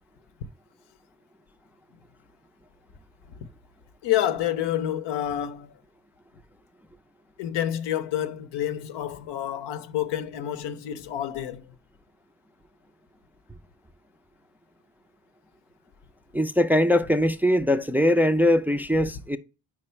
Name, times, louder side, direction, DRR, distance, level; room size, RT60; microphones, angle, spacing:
voice 1, 4.0-5.8 7.4-11.8, left 11 dB, 85° left, 0.6 m, -28 dB
voice 2, 16.3-19.4, left 1 dB, 5° right, 0.3 m, -21 dB
4.9 x 4.5 x 4.3 m
cardioid pair, 75°, 41 cm